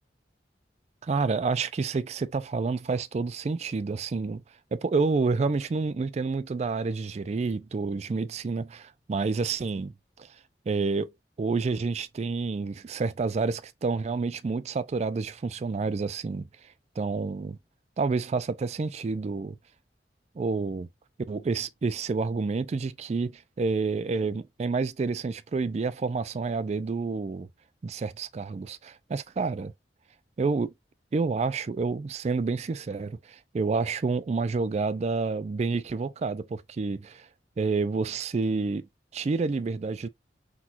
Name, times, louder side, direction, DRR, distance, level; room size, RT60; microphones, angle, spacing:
voice 1, 1.0-4.4 4.7-9.9 10.2-10.3 10.7-11.1 11.4-16.5 17.0-17.6 18.0-19.6 20.4-20.9 21.3-27.5 27.8-29.7 30.4-30.7 31.1-37.3 37.6-38.8 39.1-40.1, right 4 dB, 40° right, 0.3 m, -29 dB
6.0 x 2.3 x 2.7 m
head